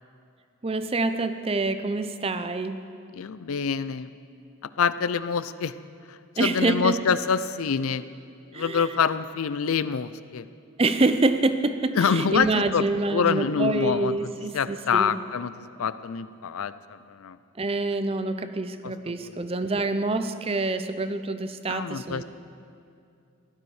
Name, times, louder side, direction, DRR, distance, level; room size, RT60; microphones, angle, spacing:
voice 1, 0.6-2.8 6.4-7.0 8.5-8.9 10.8-15.2 17.6-22.2, right 2 dB, 25° right, 10 dB, 0.5 m, -26 dB
voice 2, 3.1-4.1 4.6-5.7 6.1-8.0 8.5-10.5 12.0-12.8 13.1-17.4 18.8-19.3 21.7-22.2, left 6 dB, 85° left, 15 dB, 0.5 m, -26 dB
16.5 x 12.5 x 4.9 m, 2.5 s
head